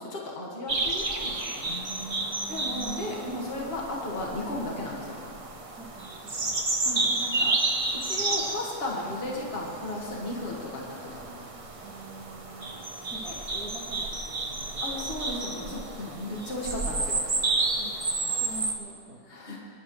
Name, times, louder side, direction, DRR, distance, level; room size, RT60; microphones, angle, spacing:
voice 1, 0.0-1.8 2.5-5.2 6.8-7.6 7.9-11.5 13.2-13.4 13.9-14.0 14.8-17.2 19.3-19.6, left 2 dB, 40° left, -3 dB, 2.1 m, -35 dB
sound 1, 0.7-18.7, right 3 dB, 25° right, 0.8 m, -31 dB
voice 2, 1.7-3.1 5.8-6.6 11.8-15.0 16.2-16.4 17.8-19.2, right 3 dB, 70° right, -3 dB, 1.9 m, -44 dB
25.0 x 11.0 x 3.2 m, 2.5 s
omnidirectional pair, 1.7 m